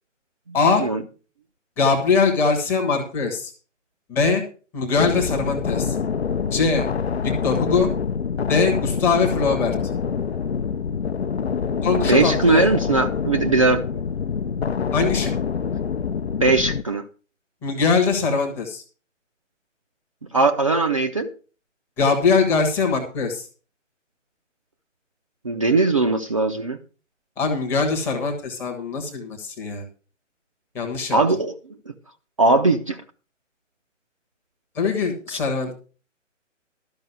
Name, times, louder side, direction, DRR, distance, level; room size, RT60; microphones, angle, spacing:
voice 1, 0.5-1.0 12.0-13.9 16.4-17.0 20.3-21.3 25.4-26.8 31.1-31.5 32.4-33.0 35.3-35.4, right 3 dB, 25° right, 3 dB, 0.5 m, -20 dB
voice 2, 1.8-3.5 4.1-4.4 4.7-6.0 6.5-6.9 7.4-7.9 8.5-9.7 11.8-12.7 14.9-15.3 17.6-18.8 22.0-23.5 27.4-29.8 30.7-31.2 34.7-35.7, left 4 dB, 5° left, 2 dB, 0.8 m, -21 dB
sound 1, 5.0-16.8, left 6 dB, 55° left, 0.7 m, -26 dB
12.5 x 5.3 x 6.7 m, 0.36 s
figure-of-eight pair, 140°, 38 cm